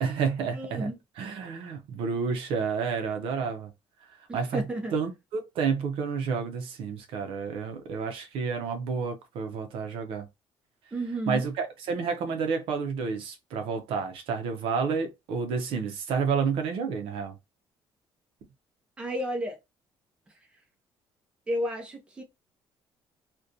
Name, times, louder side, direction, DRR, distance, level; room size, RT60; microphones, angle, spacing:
voice 1, 0.0-0.9 1.2-3.7 4.1-4.6 4.9-10.3 11.3-17.4, right 5 dB, 70° right, 0.5 m, -30 dB
voice 2, 0.5-1.0 4.3-4.9 10.9-11.4 19.0-19.6 21.5-22.2, right 1 dB, 10° right, 0.5 m, -32 dB
2.5 x 2.2 x 2.5 m
cardioid pair, 170°, 9 cm